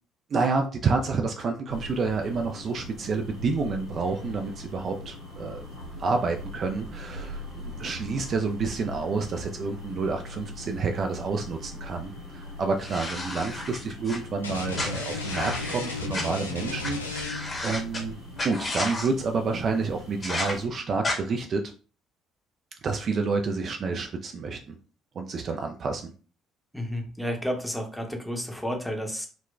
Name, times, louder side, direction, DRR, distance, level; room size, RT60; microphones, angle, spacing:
voice 1, 0.3-5.7 6.0-18.2 18.4-21.6 22.8-24.8 25.2-26.1, right 4 dB, 45° right, 4 dB, 0.3 m, -29 dB
sound 1, 1.7-20.7, left 1 dB, 70° right, 1.4 m, -41 dB
sound 2, 12.8-14.2 14.7-16.2 16.8-16.9 17.1-18.0 18.4-19.1 20.2-20.5 21.0-21.2, left 2 dB, 35° left, 0.9 m, -32 dB
sound 3, 14.4-17.6, left 4 dB, 85° left, 0.3 m, -34 dB
voice 2, 26.7-29.3, equal, ahead, 3 dB, 0.7 m, -31 dB
3.9 x 2.2 x 2.3 m, 0.37 s
figure-of-eight pair, 50°, 0 cm